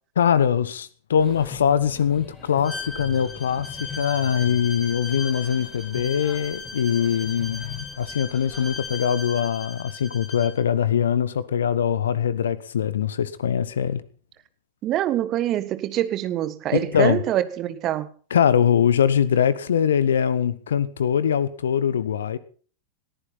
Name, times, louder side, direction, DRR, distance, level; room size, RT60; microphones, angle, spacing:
voice 1, 0.2-14.0 16.7-17.2 18.3-22.4, left 8 dB, 65° left, 1.1 m, -22 dB
sound 1, 1.2-9.0, left 6 dB, 20° left, 5.0 m, -42 dB
Bowed string instrument, 2.6-10.6, left 3 dB, 5° left, 6.5 m, -37 dB
voice 2, 14.8-18.1, right 12 dB, 35° right, 1.5 m, -25 dB
20.5 x 14.5 x 4.2 m
figure-of-eight pair, 90°, 0 cm